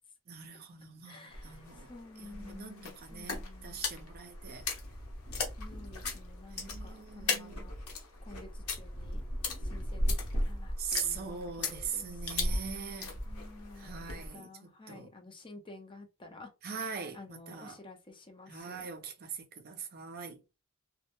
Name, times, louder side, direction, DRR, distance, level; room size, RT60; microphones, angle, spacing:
voice 1, 0.3-1.9 2.2-4.7 6.5-7.7 10.8-13.2 13.8-15.1 16.6-17.8 18.5-20.4, right 6 dB, 45° right, 0.5 m, -42 dB
voice 2, 1.0-3.8 5.6-7.8 8.2-9.2 9.6-11.3 11.6-12.2 13.3-16.5 17.1-18.9, left 2 dB, 20° left, 0.5 m, -51 dB
sound 1, 1.3-14.3, left 2 dB, 80° left, 0.8 m, -37 dB
2.1 x 2.0 x 2.9 m
head